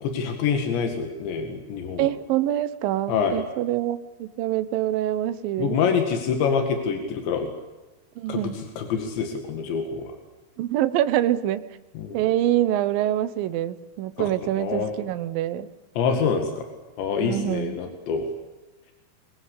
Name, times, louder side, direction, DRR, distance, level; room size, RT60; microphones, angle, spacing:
voice 1, 0.0-2.1 3.1-3.4 5.6-7.5 8.3-10.1 12.0-12.2 14.2-14.3 14.6-14.9 16.0-16.7 17.0-18.3, left 6 dB, 90° left, 5 dB, 4.4 m, -26 dB
voice 2, 2.0-5.8 8.2-8.6 10.6-11.7 12.1-15.7 17.2-17.8, right 13 dB, 70° right, 13 dB, 2.4 m, -25 dB
23.0 x 23.0 x 8.5 m, 1.1 s
omnidirectional pair, 5.0 m